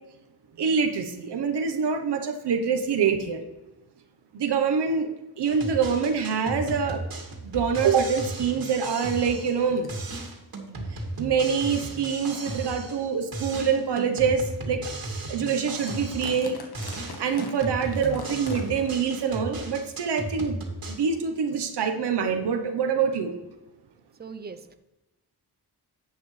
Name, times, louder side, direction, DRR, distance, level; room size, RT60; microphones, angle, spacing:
voice 1, 0.6-3.4 4.3-5.1 5.4-7.0 7.4-9.9 10.9-14.9 15.3-16.6 17.2-20.6 20.9-23.3, right 6 dB, 85° right, 5 dB, 1.1 m, -25 dB
sound 1, 5.4-9.6 9.9-13.1 13.3-16.5 16.7-21.0, right 2 dB, 60° right, 2.3 m, -35 dB
sound 2, 7.7-8.0 9.1-9.2 9.8-10.3 11.1-11.2 11.8-12.0 12.6-12.7 13.4-13.6 14.2-14.3 14.7-14.8 15.0-15.2 15.5-19.2 19.5-19.6 20.4-20.5, left 3 dB, 70° left, 1.5 m, -43 dB
voice 2, 24.2-24.8, right 5 dB, 25° right, 10 dB, 0.7 m, -40 dB
11.0 x 7.8 x 3.3 m, 1.0 s
wide cardioid pair, 105°, 39 cm